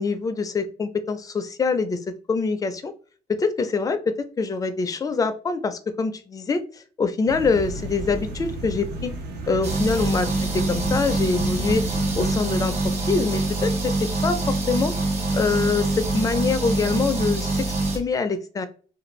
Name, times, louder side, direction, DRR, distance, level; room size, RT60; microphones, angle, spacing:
voice 1, 0.0-2.0 2.3-2.9 3.3-9.1 9.5-10.3 10.7-11.8 12.2-12.7 13.1-14.9 15.3-18.7, left 4 dB, 20° left, 9 dB, 0.4 m, -24 dB
sound 1, 7.3-12.3, right 2 dB, 80° right, 0.7 m, -33 dB
sound 2, 9.6-18.0, right 2 dB, 40° right, 0.9 m, -25 dB
2.5 x 2.2 x 3.0 m, 0.40 s
cardioid pair, 110°, 17 cm